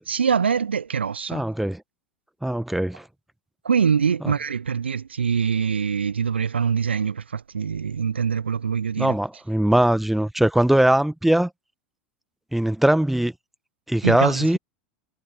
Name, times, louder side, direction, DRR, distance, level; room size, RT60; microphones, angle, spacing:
voice 1, 0.1-1.4 3.6-9.1 14.0-14.6, right 6 dB, 75° right, 1.0 m, -24 dB
voice 2, 1.3-1.8 2.4-3.0 9.0-11.5 12.5-13.3 13.9-14.6, right 1 dB, 5° right, 1.5 m, -20 dB
figure-of-eight pair, 85°, 6 cm